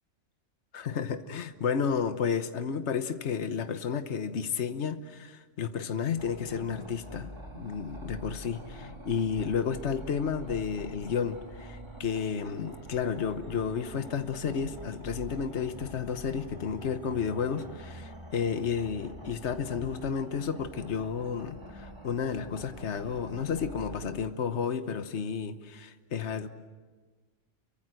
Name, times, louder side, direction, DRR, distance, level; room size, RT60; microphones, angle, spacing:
voice 1, 0.7-26.5, left 6 dB, 60° left, 10 dB, 1.3 m, -32 dB
sound 1, 6.2-24.1, right 1 dB, 20° right, 3.4 m, -45 dB
29.0 x 24.0 x 7.8 m, 1.4 s
omnidirectional pair, 1.3 m